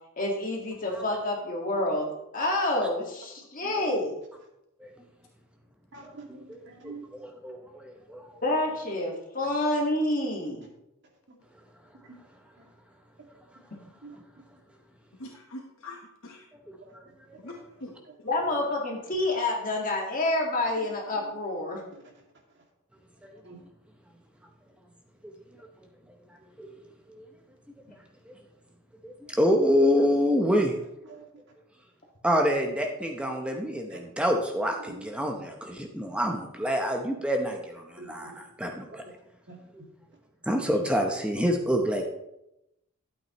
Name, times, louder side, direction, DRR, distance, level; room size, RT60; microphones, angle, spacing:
voice 1, 0.2-2.1 2.3-4.1 8.4-10.7 18.2-21.8, left 1 dB, 35° left, 0 dB, 1.8 m, -28 dB
voice 2, 3.6-3.9 5.9-7.0 12.1-12.2 14.0-14.4 16.8-16.9 18.0-18.1 20.8-21.4 21.9-22.1 22.5-22.6 23.4-23.6 31.0-31.3 33.9-34.0 34.8-35.1 38.0-38.4 39.5-39.9 41.7-41.8, right 3 dB, 50° right, -1 dB, 2.3 m, -47 dB
voice 3, 6.8-8.4 25.2-25.3 26.6-26.7 27.1-27.2 29.0-30.7 32.2-39.0 40.5-42.0, equal, 5° right, 2 dB, 0.7 m, -27 dB
voice 4, 15.2-16.4 17.4-18.0, left 1 dB, 65° left, 1 dB, 1.1 m, -43 dB
12.5 x 8.2 x 3.0 m, 0.86 s
head